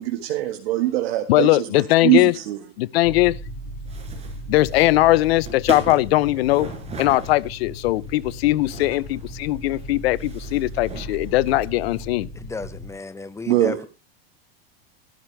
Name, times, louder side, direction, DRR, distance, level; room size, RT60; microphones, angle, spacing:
voice 1, 0.0-2.6 13.5-13.8, right 15 dB, 70° right, 1.7 m, -22 dB
voice 2, 1.3-2.3 2.8-3.4 4.5-6.7 7.0-12.3, left 17 dB, 75° left, 0.7 m, -20 dB
sound 1, 3.0-12.9, equal, 45° left, 5.7 m, -37 dB
sound 2, 3.9-12.1, right 4 dB, 20° right, 5.3 m, -39 dB
voice 3, 12.4-13.9, left 3 dB, 10° left, 0.9 m, -33 dB
14.5 x 12.5 x 3.4 m
supercardioid pair, 125°, 31 cm